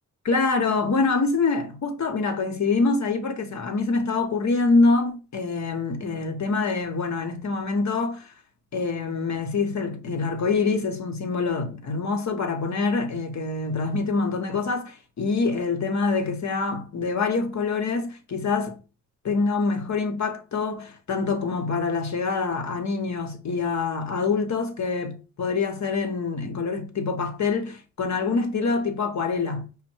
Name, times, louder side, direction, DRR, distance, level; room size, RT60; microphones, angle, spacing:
voice 1, 0.2-8.3 8.7-18.8 19.2-29.7, left 4 dB, 60° left, 1.0 m, -25 dB
5.2 x 2.2 x 4.4 m
cardioid pair, 80°, 32 cm